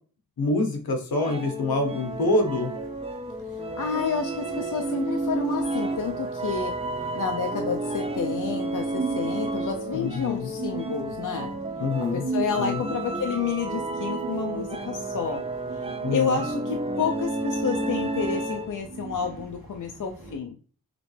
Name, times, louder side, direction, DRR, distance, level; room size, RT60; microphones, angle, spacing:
voice 1, 0.4-2.7 9.9-10.5 11.8-12.3 12.6-12.8 16.0-16.4, left 2 dB, 75° left, 5 dB, 1.0 m, -26 dB
sound 1, 1.2-18.9, right 2 dB, 15° right, 0.4 m, -31 dB
sound 2, 1.8-20.4, right 4 dB, 70° right, 1.3 m, -40 dB
voice 2, 3.8-6.7 7.1-11.5 12.1-15.4 15.7-20.6, left 6 dB, 60° left, 4 dB, 0.5 m, -30 dB
5.1 x 3.3 x 3.2 m, 0.41 s
wide cardioid pair, 125°, 36 cm